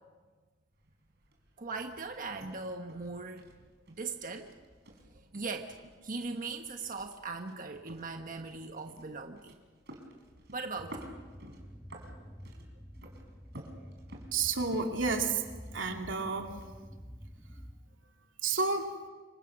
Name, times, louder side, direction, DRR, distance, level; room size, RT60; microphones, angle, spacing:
sound 1, 0.7-17.7, right 1 dB, 60° right, 4.6 m, -54 dB
voice 1, 1.6-3.4 3.9-4.5 5.1-5.8 6.0-9.6 10.5-11.1, right 3 dB, 45° right, 4 dB, 1.2 m, -39 dB
sound 2, 10.8-17.8, equal, ahead, 1.3 m, -49 dB
voice 2, 14.3-15.4 15.7-16.5 18.4-18.9, right 4 dB, 90° right, 3 dB, 2.7 m, -30 dB
27.5 x 24.0 x 6.1 m, 1.4 s
head